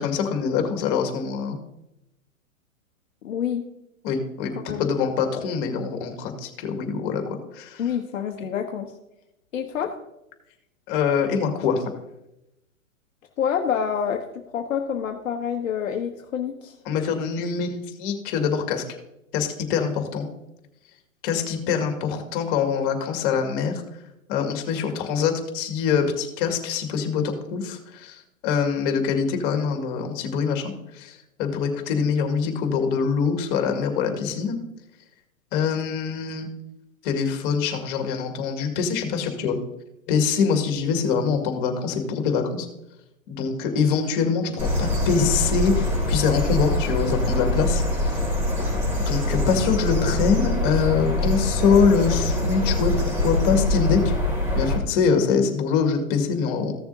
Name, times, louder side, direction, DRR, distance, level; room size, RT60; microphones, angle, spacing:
voice 1, 0.0-1.6 4.0-7.8 10.9-11.9 16.9-18.8 19.3-20.3 21.2-23.7 24.3-34.6 35.5-36.5 37.0-39.6 40.1-42.7 43.3-48.2 49.1-54.1 54.5-56.7, left 6 dB, 40° left, 4 dB, 2.2 m, -24 dB
voice 2, 3.2-3.6 4.6-4.9 7.8-8.9 9.5-9.9 13.4-14.2 14.5-16.8, left 8 dB, 70° left, 3 dB, 1.2 m, -27 dB
sound 1, 44.6-54.8, left 1 dB, 15° right, 3.2 m, -24 dB
15.5 x 6.9 x 2.8 m, 0.88 s
hypercardioid pair, 120°, 41 cm